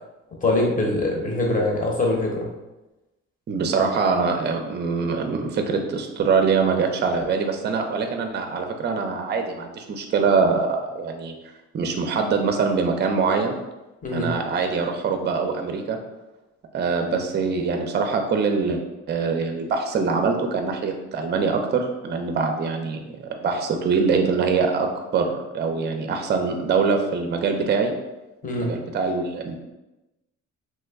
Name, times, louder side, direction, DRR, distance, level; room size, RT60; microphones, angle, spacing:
voice 1, 0.4-2.5 14.0-14.3 28.4-28.7, left 2 dB, 25° left, -1 dB, 0.8 m, -23 dB
voice 2, 3.5-11.3 11.7-13.5 14.1-16.0 16.7-18.8 19.1-23.0 23.4-25.3 25.5-27.9 28.6-29.5, right 5 dB, 35° right, 5 dB, 0.4 m, -23 dB
3.1 x 2.1 x 3.4 m, 1.0 s
cardioid pair, 90°, 30 cm